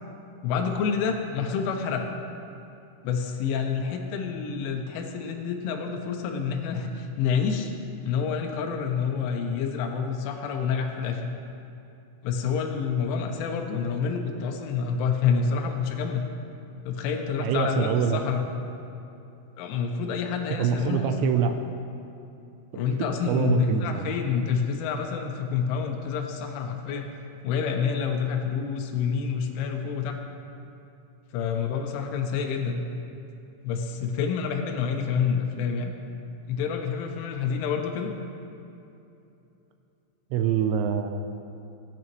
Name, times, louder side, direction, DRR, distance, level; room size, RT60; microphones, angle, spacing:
voice 1, 0.4-2.1 3.0-7.7 8.0-11.3 12.2-16.3 16.9-18.5 19.6-21.3 22.7-27.1 27.4-30.2 31.3-32.8 33.6-35.9 36.5-38.1, left 6 dB, 85° left, 3 dB, 3.3 m, -28 dB
voice 2, 17.4-18.2 20.6-21.5 23.3-24.1 40.3-41.3, right 8 dB, 85° right, 6 dB, 2.7 m, -25 dB
17.5 x 9.7 x 3.1 m, 2.8 s
omnidirectional pair, 5.5 m